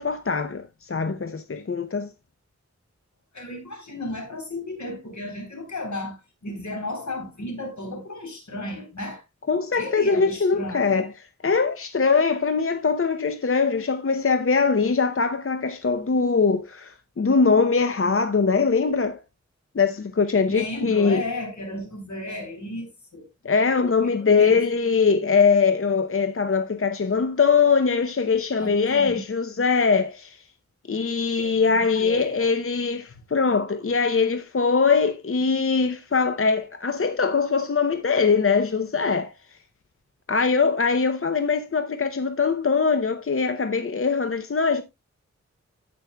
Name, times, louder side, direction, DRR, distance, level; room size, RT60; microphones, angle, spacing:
voice 1, 0.0-2.1 9.5-11.1 11.4-19.2 19.7-21.2 23.4-30.4 30.9-39.3 40.3-44.8, left 5 dB, 50° left, 0.7 m, -22 dB
voice 2, 3.3-9.2 9.8-11.0 20.5-23.3 24.0-24.6 28.6-29.2 31.4-32.5, left 2 dB, 75° left, 3.6 m, -34 dB
16.0 x 5.4 x 2.2 m
wide cardioid pair, 55°, 29 cm